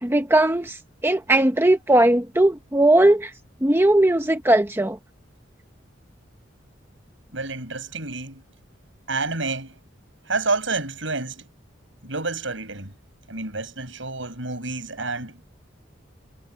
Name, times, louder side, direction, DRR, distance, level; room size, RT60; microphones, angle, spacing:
voice 1, 0.0-0.8 1.0-3.3 3.6-5.0, right 1 dB, 10° right, 0.9 m, -18 dB
voice 2, 7.3-8.4 9.1-9.7 10.3-11.5 12.0-12.9 13.3-15.5, right 3 dB, 70° right, 7.9 m, -29 dB
head